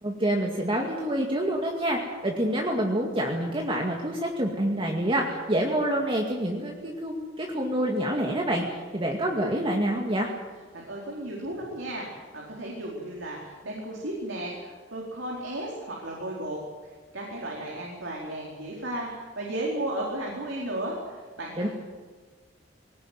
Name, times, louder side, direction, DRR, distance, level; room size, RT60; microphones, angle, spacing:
voice 1, 0.0-10.3 21.6-21.7, right 1 dB, 30° right, 0 dB, 2.2 m, -27 dB
voice 2, 10.7-16.6 17.1-21.7, right 1 dB, 80° right, -3 dB, 4.5 m, -34 dB
21.5 x 18.0 x 9.3 m, 1.4 s
head